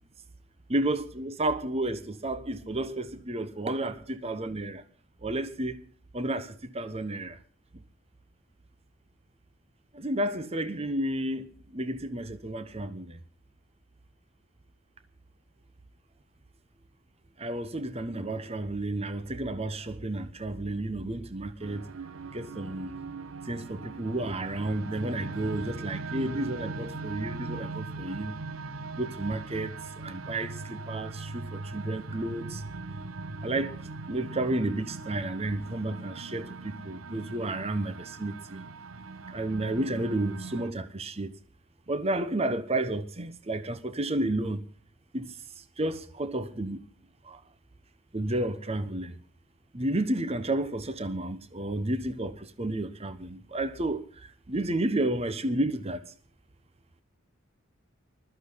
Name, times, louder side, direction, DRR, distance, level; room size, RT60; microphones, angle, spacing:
voice 1, 0.7-4.8 5.2-5.9 6.1-7.4 9.9-11.5 11.7-13.2 17.4-21.8 22.3-23.0 23.5-28.3 28.9-29.7 30.0-32.6 33.4-33.8 34.1-38.6 39.3-41.3 41.9-44.6 45.1-45.3 45.8-46.8 47.3-47.4 48.1-49.2 49.7-54.1 54.5-56.0, right 1 dB, 30° right, 1.1 m, -31 dB
sound 1, 21.6-40.7, right 3 dB, 80° right, 1.0 m, -40 dB
20.5 x 13.5 x 3.9 m
head